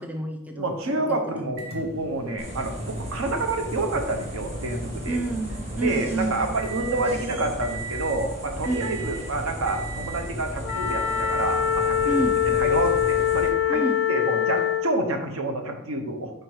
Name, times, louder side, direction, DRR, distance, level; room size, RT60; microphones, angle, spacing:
voice 1, 0.0-0.7 1.4-1.6 5.1-6.5 8.6-9.0 12.1-12.4 13.7-14.0, right 2 dB, 5° right, 4 dB, 0.3 m, -29 dB
voice 2, 0.5-5.2 5.7-12.2 12.5-13.8 14.1-16.3, right 2 dB, 65° right, 5 dB, 0.8 m, -28 dB
Microwave oven, 1.6-7.2 7.6-8.2 8.6-9.3 9.7-10.3 10.7-11.5 12.5-12.6 14.6-14.7, right 4 dB, 45° right, 1.3 m, -40 dB
sound 1, 2.4-13.5, equal, 30° right, 1.5 m, -35 dB
Wind instrument woodwind instrument, 10.6-14.9, left 10 dB, 65° left, 0.4 m, -23 dB
4.5 x 4.4 x 4.8 m, 0.88 s
head